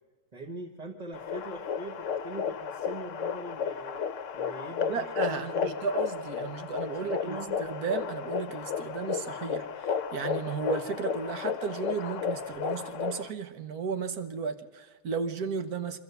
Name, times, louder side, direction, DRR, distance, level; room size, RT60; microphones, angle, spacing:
voice 1, 0.3-4.0 4.3-5.7 6.9-7.6, right 2 dB, 30° right, 1 dB, 1.4 m, -42 dB
sound 1, 1.1-13.3, left 7 dB, 60° left, 1.1 m, -33 dB
voice 2, 4.9-16.0, right 5 dB, 85° right, 10 dB, 1.7 m, -34 dB
24.5 x 13.5 x 8.0 m, 1.5 s
omnidirectional pair, 1.6 m